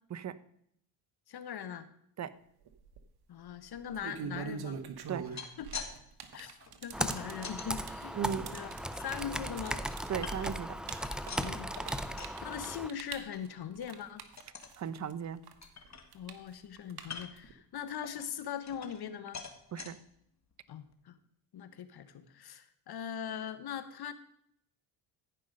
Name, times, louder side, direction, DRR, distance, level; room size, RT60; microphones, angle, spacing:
voice 1, 1.3-1.9 3.3-4.8 5.6-5.7 6.3-8.2 8.5-9.8 11.3-11.7 12.4-14.2 16.1-19.4 20.7-21.2 21.5-24.1, left 8 dB, 55° left, 11 dB, 1.2 m, -41 dB
sound 1, 2.7-3.0 3.8-15.1 15.4-17.5, right 6 dB, 55° right, 1.4 m, -44 dB
sound 2, 5.1-5.9 6.2-7.7 8.2-9.2 9.7-10.7 11.0-12.4 12.7-13.0 13.3-13.4 13.8-14.0 14.4-14.8 15.2-15.3 15.6-16.4 17.0-17.5 18.0-19.1 19.3-19.9 20.5-20.6 20.9-21.0, left 6 dB, 35° left, 1.6 m, -46 dB
Computer keyboard, 6.9-12.9, equal, ahead, 0.5 m, -37 dB
voice 2, 8.1-8.5 10.1-10.8 14.8-15.4 19.7-20.0, right 8 dB, 35° right, 13 dB, 0.8 m, -36 dB
15.0 x 5.5 x 5.3 m, 0.69 s
supercardioid pair, 70°, 47 cm